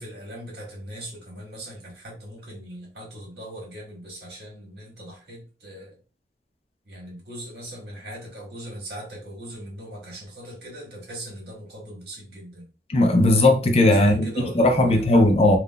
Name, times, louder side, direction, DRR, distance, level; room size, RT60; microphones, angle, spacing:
voice 1, 0.0-5.9 6.9-12.7 14.0-15.2 15.5-15.6, right 1 dB, 65° right, 1.6 m, -40 dB
voice 2, 12.9-15.6, left 1 dB, 35° left, 0.4 m, -18 dB
3.6 x 2.4 x 2.3 m
head